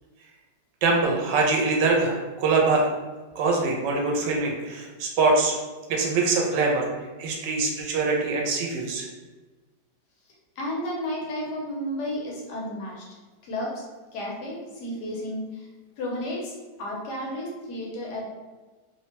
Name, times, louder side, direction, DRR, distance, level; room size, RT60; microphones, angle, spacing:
voice 1, 0.8-2.9 3.4-5.5 5.9-6.9 7.2-9.1, right 3 dB, 85° right, 0 dB, 1.3 m, -23 dB
voice 2, 10.6-13.1 13.4-13.8 14.1-15.7 16.0-16.5 16.8-18.3, left 1 dB, 75° left, -3 dB, 1.2 m, -32 dB
3.1 x 2.1 x 2.8 m, 1.3 s
omnidirectional pair, 1.9 m